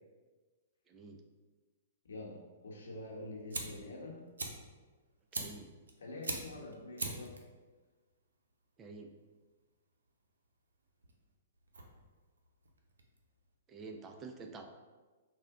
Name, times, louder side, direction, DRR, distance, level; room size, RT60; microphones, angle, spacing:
voice 1, 0.9-1.2 5.3-5.7 8.8-9.1 13.7-14.7, right 4 dB, 25° right, 4 dB, 0.4 m, -48 dB
voice 2, 2.0-4.2 6.0-7.4, left 2 dB, 75° left, -2 dB, 0.9 m, -46 dB
Fire, 3.1-13.5, right 3 dB, 80° right, 0.5 m, -45 dB
3.6 x 2.1 x 3.7 m, 1.3 s
hypercardioid pair, 115°, 0 cm